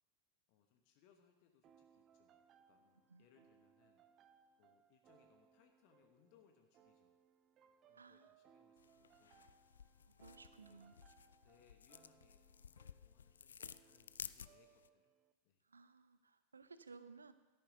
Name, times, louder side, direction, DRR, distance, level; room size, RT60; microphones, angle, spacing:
voice 1, 0.5-4.1 4.6-7.1 7.9-9.7 10.3-10.9 11.4-15.1 15.4-15.6, left 8 dB, 45° left, 5 dB, 1.1 m, -73 dB
sound 1, 1.6-15.3, right 7 dB, 30° right, 0.6 m, -70 dB
voice 2, 7.9-8.3 10.1-10.9 15.7-17.3, right 4 dB, 75° right, 13 dB, 0.6 m, -59 dB
sound 2, 8.8-14.9, left 7 dB, 70° left, 0.3 m, -55 dB
13.5 x 10.0 x 3.9 m, 1.1 s
figure-of-eight pair, 90°, 0 cm